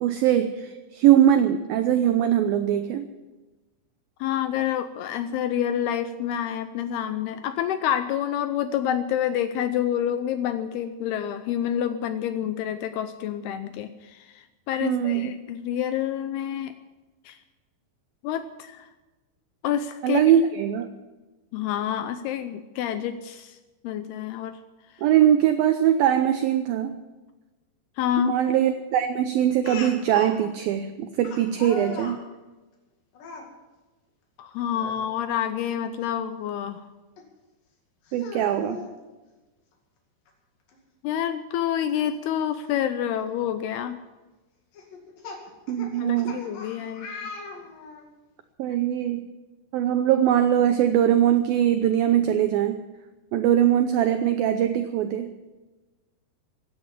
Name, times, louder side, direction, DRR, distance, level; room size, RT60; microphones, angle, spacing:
voice 1, 0.0-3.1 14.8-15.3 20.0-20.9 25.0-26.9 28.2-32.2 38.1-38.9 45.7-46.4 48.6-49.3 49.7-52.8 53.3-55.3, right 10 dB, 75° right, 8 dB, 2.2 m, -21 dB
voice 2, 4.2-16.8 17.3-17.4 18.2-18.9 19.6-20.2 21.5-23.6 23.8-24.6 28.0-28.4 34.4-36.8 41.0-44.0 46.0-47.1, left 10 dB, 80° left, 11 dB, 2.5 m, -28 dB
Speech, 29.6-30.4 31.2-32.2 33.1-33.5 34.7-35.0 35.4-35.5 37.2-37.3 38.1-38.9 40.3-40.4 40.7-40.8 42.7-42.8 43.4-43.6 44.7-48.1, left 4 dB, 60° left, 3.7 m, -39 dB
16.5 x 10.5 x 7.5 m, 1.2 s
omnidirectional pair, 4.9 m